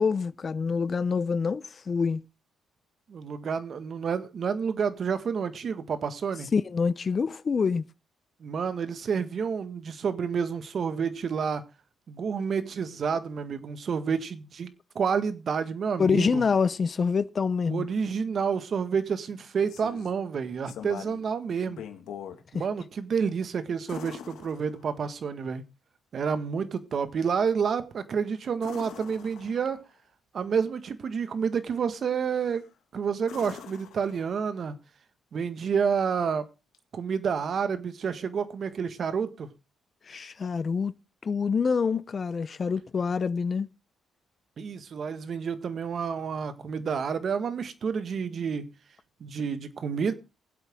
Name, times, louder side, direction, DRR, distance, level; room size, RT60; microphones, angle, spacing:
voice 1, 0.0-2.2 6.5-7.8 16.0-17.9 40.1-40.9 41.2-43.7, left 5 dB, 40° left, 0.6 m, -26 dB
voice 2, 3.1-6.5 8.4-11.6 12.1-16.4 17.7-21.8 22.5-25.6 26.1-29.8 30.3-32.6 32.9-34.8 35.3-36.4 36.9-39.5 44.6-48.7 49.2-50.1, right 6 dB, 50° right, 1.7 m, -29 dB
sound 1, 19.3-20.2 20.7-21.3 21.7-22.4 23.9-25.1 28.6-29.9 32.3-32.7 33.2-34.6 36.7-36.8, left 9 dB, 80° left, 1.9 m, -43 dB
20.5 x 8.1 x 3.7 m
cardioid pair, 90°, 0 cm